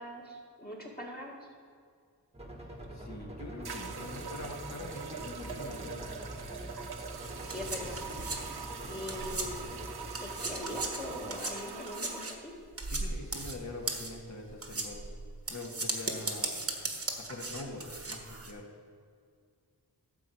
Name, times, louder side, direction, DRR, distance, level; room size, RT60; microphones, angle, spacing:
voice 1, 0.0-1.5 7.5-8.0 8.9-9.7 10.2-12.5, left 1 dB, 25° left, -4 dB, 2.1 m, -41 dB
sound 1, 2.3-11.4, right 1 dB, 15° right, 1.4 m, -45 dB
voice 2, 2.6-6.1 8.8-9.0 12.9-15.0 15.5-16.6 17.2-18.7, left 2 dB, 45° left, 0 dB, 1.9 m, -44 dB
sound 2, 2.8-2.9 3.6-12.4, right 5 dB, 75° right, 0.9 m, -43 dB
sound 3, 7.0-9.8 10.1-18.5, right 2 dB, 35° right, 1.3 m, -37 dB
12.5 x 4.6 x 7.9 m, 2.2 s
wide cardioid pair, 90°, 38 cm